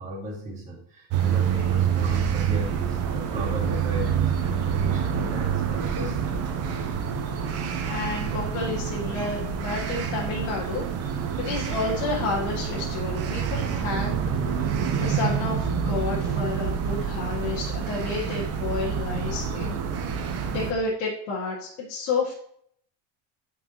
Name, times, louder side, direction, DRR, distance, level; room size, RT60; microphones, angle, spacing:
voice 1, 0.0-6.6, left 1 dB, 20° right, -5 dB, 2.0 m, -36 dB
sound 1, 1.1-20.7, right 7 dB, 40° right, 0.8 m, -27 dB
voice 2, 7.8-14.7 14.9-19.8 20.1-22.3, left 3 dB, 85° left, -5 dB, 1.9 m, -31 dB
9.2 x 4.9 x 2.9 m, 0.65 s
cardioid pair, 155°, 37 cm